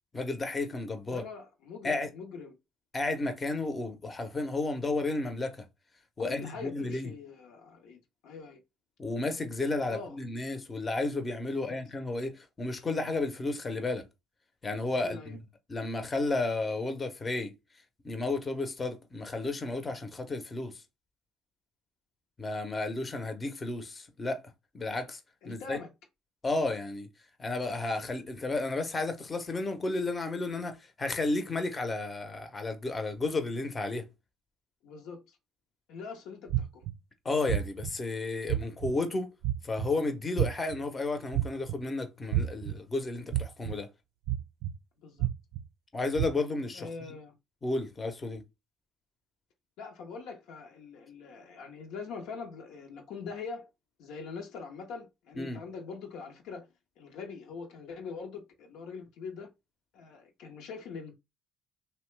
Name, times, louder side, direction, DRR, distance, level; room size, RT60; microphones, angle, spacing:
voice 1, 0.1-1.2 1.8-2.1 2.9-5.6 6.2-7.1 9.0-14.0 14.6-15.4 15.7-17.5 18.0-20.8 22.4-24.4 24.7-25.2 25.4-25.8 26.4-27.1 27.4-34.1 37.2-39.3 39.6-43.9 45.9-47.1 47.6-48.4 55.4-55.6, left 2 dB, 30° left, 0.7 m, -32 dB
voice 2, 1.1-2.5 6.2-8.0 8.2-8.6 9.9-10.2 11.5-11.8 15.0-15.4 25.4-25.9 34.8-35.4 35.9-36.8 45.0-45.3 46.7-47.3 49.8-53.7 54.0-56.7 57.0-59.5 59.9-61.1, left 5 dB, 75° left, 0.8 m, -43 dB
sound 1, 36.5-36.9 37.5-37.9 38.5-38.9 39.4-39.9 40.4-40.8 41.3-41.8 42.3-42.7 43.3-43.7 44.3-44.7 45.2-45.6 46.2-46.3, right 13 dB, 75° right, 0.4 m, -28 dB
2.8 x 2.2 x 3.2 m
supercardioid pair, 75°, 0 cm